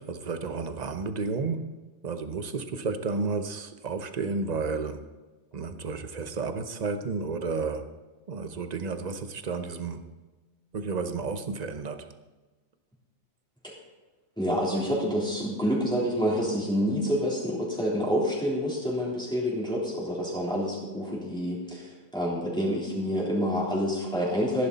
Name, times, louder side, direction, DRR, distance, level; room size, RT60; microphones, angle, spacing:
voice 1, 0.0-1.7 2.0-5.1 5.5-7.9 8.3-10.1 10.7-12.1, right 4 dB, 40° right, 9 dB, 0.8 m, -32 dB
voice 2, 14.4-24.7, equal, 5° left, -6 dB, 3.4 m, -28 dB
14.0 x 11.5 x 4.1 m, 1.2 s
omnidirectional pair, 1.4 m